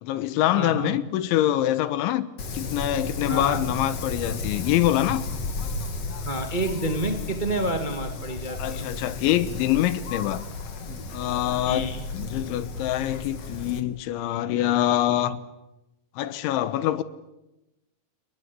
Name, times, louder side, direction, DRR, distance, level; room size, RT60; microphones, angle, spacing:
voice 1, 0.0-2.3 2.5-5.3 8.6-10.4 11.1-15.4 16.2-17.0, left 13 dB, 80° left, 3.5 m, -25 dB
voice 2, 0.5-0.9 3.3-3.6 6.2-8.9 11.6-12.0, right 1 dB, 70° right, 0.4 m, -29 dB
Wind, 2.4-13.8, left 3 dB, 45° left, 2.2 m, -34 dB
30.0 x 19.5 x 8.4 m
omnidirectional pair, 5.4 m